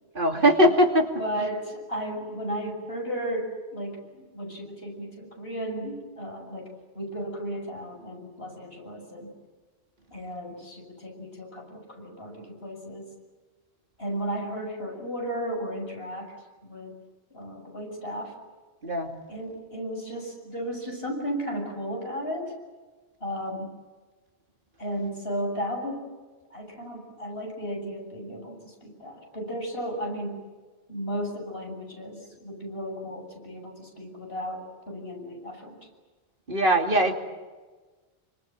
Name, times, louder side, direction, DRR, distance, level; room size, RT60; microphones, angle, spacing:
voice 1, 0.1-1.5 18.8-19.1 36.5-37.1, equal, 55° right, 3 dB, 2.9 m, -21 dB
voice 2, 1.2-9.3 10.1-13.1 14.0-16.3 16.6-16.9 17.3-18.3 19.3-22.5 23.2-23.7 24.8-26.1 26.5-30.4 30.9-35.8, equal, 70° left, 1 dB, 7.6 m, -34 dB
28.0 x 25.5 x 7.7 m, 1.3 s
omnidirectional pair, 1.0 m